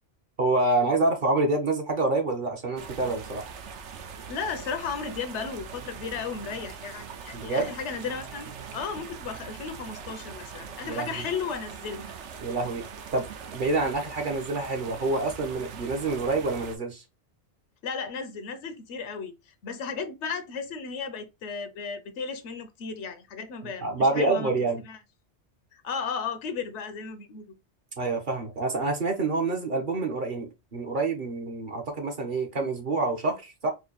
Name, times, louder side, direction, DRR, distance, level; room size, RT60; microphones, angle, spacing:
voice 1, 0.4-3.4 7.3-7.7 10.8-11.3 12.4-12.8 13.1-13.3 13.5-17.0 23.6-24.8 28.0-33.7, right 3 dB, 50° right, 1.0 m, -27 dB
sound 1, 2.8-16.8, right 6 dB, 80° right, 1.0 m, -42 dB
voice 2, 4.3-12.1 17.8-24.5 24.8-25.0 25.7-27.5, left 5 dB, 80° left, 1.0 m, -35 dB
4.6 x 2.2 x 3.0 m
omnidirectional pair, 1.2 m